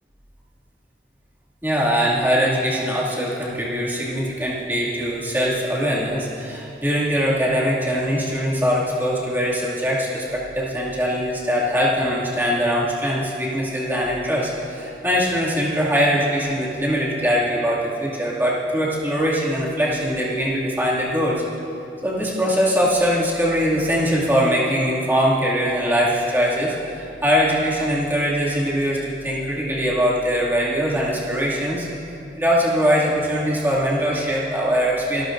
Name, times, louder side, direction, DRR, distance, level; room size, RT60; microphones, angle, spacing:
voice 1, 1.6-21.4 22.0-31.9 32.4-35.2, equal, 10° right, -7 dB, 2.3 m, -22 dB
25.0 x 13.5 x 2.6 m, 2.9 s
head